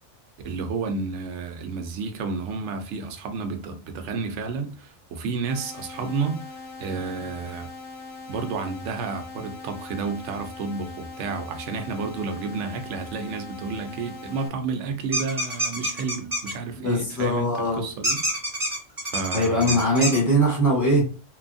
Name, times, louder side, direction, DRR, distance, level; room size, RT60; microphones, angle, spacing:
voice 1, 0.4-6.4 6.8-7.7 8.3-17.5 17.8-18.2 19.1-19.8, right 4 dB, 75° right, 0.9 m, -31 dB
sound 1, 5.5-14.5, left 3 dB, 55° left, 0.7 m, -41 dB
squeaky toy, 15.1-16.5 18.0-20.2, equal, 20° right, 0.7 m, -27 dB
voice 2, 16.8-17.8 19.3-21.1, equal, 15° left, 0.9 m, -21 dB
2.9 x 2.3 x 2.5 m
omnidirectional pair, 1.2 m